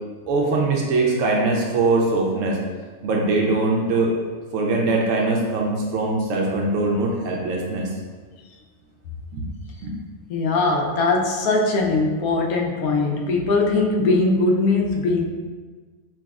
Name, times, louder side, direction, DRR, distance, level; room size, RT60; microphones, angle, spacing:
voice 1, 0.3-2.6 3.0-4.1 4.5-7.9 9.3-9.5 9.8-10.0, right 3 dB, 70° right, -1 dB, 0.9 m, -22 dB
voice 2, 10.3-15.3, left 3 dB, 80° left, 0 dB, 1.0 m, -20 dB
5.8 x 2.3 x 2.3 m, 1.4 s
omnidirectional pair, 1.5 m